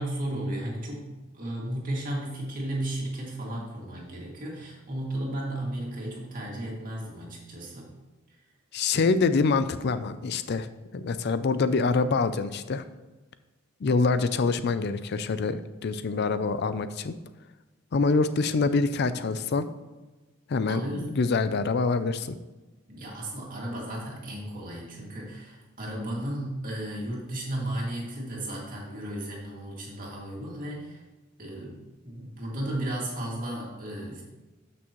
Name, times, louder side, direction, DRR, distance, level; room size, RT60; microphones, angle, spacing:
voice 1, 0.0-7.9 20.7-21.0 22.9-31.0 31.4-31.8 32.0-34.2, right 1 dB, 40° right, -3 dB, 2.3 m, -34 dB
voice 2, 8.7-10.7 10.9-12.8 13.8-17.1 17.9-19.7 20.5-22.4, left 4 dB, 50° left, 12 dB, 0.4 m, -25 dB
12.5 x 6.0 x 3.1 m, 1.1 s
head